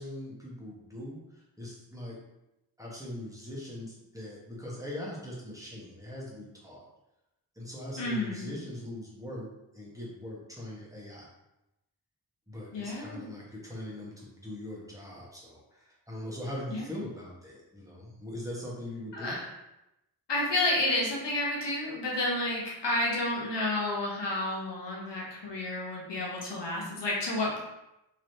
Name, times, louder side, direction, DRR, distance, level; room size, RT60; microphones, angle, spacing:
voice 1, 0.0-2.2 2.8-6.8 7.5-11.3 12.5-19.4, left 1 dB, 5° right, -5 dB, 1.1 m, -41 dB
voice 2, 8.0-8.5 12.7-13.3 16.7-16.8 19.1-19.4 20.3-27.6, left 1 dB, 70° left, -3 dB, 1.0 m, -30 dB
3.1 x 3.0 x 2.7 m, 0.91 s
cardioid pair, 40°, 44 cm